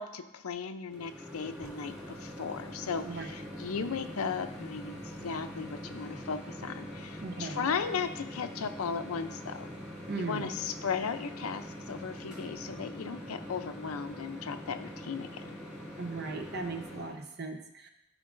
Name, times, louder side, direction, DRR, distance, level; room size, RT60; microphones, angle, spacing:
voice 1, 0.0-9.7 10.2-15.6, left 6 dB, 90° left, 9 dB, 0.5 m, -36 dB
Microwave oven, 0.9-17.2, equal, 5° right, 2.2 m, -43 dB
voice 2, 3.0-3.3 7.2-7.7 10.1-10.5 16.0-17.9, right 3 dB, 50° right, 5 dB, 0.8 m, -38 dB
14.0 x 5.1 x 2.5 m, 0.86 s
head